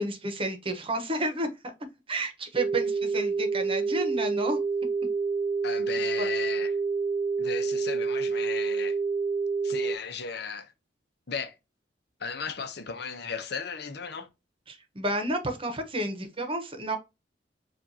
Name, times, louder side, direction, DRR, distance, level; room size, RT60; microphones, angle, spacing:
voice 1, 0.0-1.5 2.1-4.6 6.2-6.3 14.7-17.0, right 1 dB, 30° right, 1.0 m, -30 dB
sound 1, 2.6-10.0, right 4 dB, 60° right, 0.5 m, -28 dB
voice 2, 5.6-6.8 7.4-9.0 9.6-10.7 11.3-11.5 12.2-14.3, left 5 dB, 65° left, 0.8 m, -35 dB
7.3 x 2.5 x 2.8 m
head